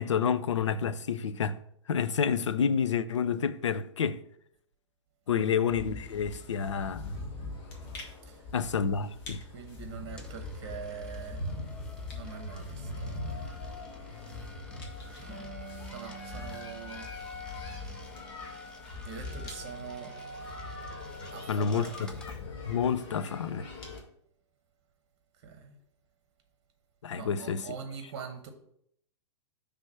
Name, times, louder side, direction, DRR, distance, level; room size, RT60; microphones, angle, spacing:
voice 1, 0.0-1.6 1.9-4.2 5.3-7.1 8.5-9.4 14.1-14.5 21.5-22.1 22.7-23.7 27.0-27.8, left 7 dB, 70° left, 0.4 m, -29 dB
sound 1, 5.7-24.0, left 2 dB, 45° left, 1.6 m, -41 dB
voice 2, 9.5-11.4 12.1-13.4 15.2-15.5 15.9-17.1 17.6-17.8 18.4-18.8 19.0-20.1 21.3-22.1 25.4-25.7 27.1-28.5, right 6 dB, 45° right, 0.9 m, -44 dB
Coin (dropping), 9.6-22.4, left 1 dB, 5° left, 0.8 m, -55 dB
Harp, 15.3-18.7 19.0-20.1, right 6 dB, 10° right, 2.7 m, -50 dB
6.0 x 3.4 x 5.6 m
figure-of-eight pair, 110°, 16 cm